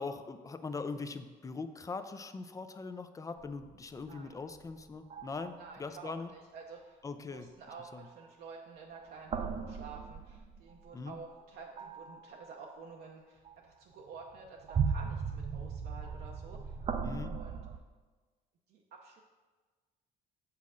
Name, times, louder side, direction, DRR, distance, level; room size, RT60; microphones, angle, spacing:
voice 1, 0.0-6.3 7.0-7.5 7.9-8.0 10.9-11.2 17.0-17.3, left 4 dB, 20° left, 10 dB, 0.4 m, -41 dB
sound 1, 3.4-4.7 5.1-5.9 9.0-11.0 11.8-12.8 13.5-13.6 14.2-17.8, right 6 dB, 35° right, 0.5 m, -37 dB
voice 2, 5.5-16.7 17.2-17.6 18.7-19.2, right 5 dB, 70° right, -1 dB, 0.7 m, -50 dB
7.3 x 5.7 x 3.7 m, 1.4 s
cardioid pair, 110°, 17 cm